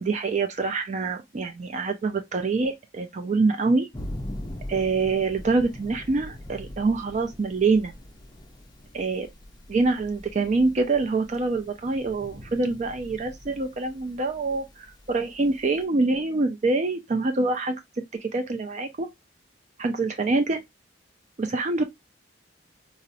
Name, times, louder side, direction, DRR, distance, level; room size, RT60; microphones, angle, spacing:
voice 1, 0.0-3.9 4.7-7.9 8.9-9.3 9.7-17.8 18.2-19.1 19.8-20.6 21.4-21.8, right 3 dB, 40° right, 0.4 m, -25 dB
Thunder, 3.9-15.8, left 1 dB, 20° left, 0.5 m, -42 dB
4.0 x 2.0 x 2.4 m
head